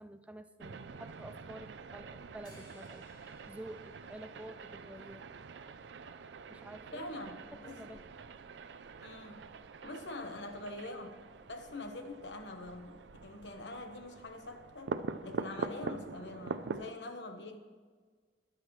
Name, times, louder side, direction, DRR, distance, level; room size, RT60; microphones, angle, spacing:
voice 1, 0.0-3.1 3.5-5.3 6.5-7.4 7.6-8.0, right 1 dB, 10° right, 9 dB, 0.4 m, -49 dB
sound 1, 0.6-16.9, right 4 dB, 80° right, 0.5 m, -45 dB
sound 2, 2.4-5.2, left 1 dB, 25° left, 2.5 m, -63 dB
voice 2, 6.9-7.8 9.0-9.5 9.8-11.2 11.5-14.9 15.2-17.6, left 2 dB, 85° left, 6 dB, 1.2 m, -44 dB
21.0 x 7.6 x 3.2 m, 1.5 s
head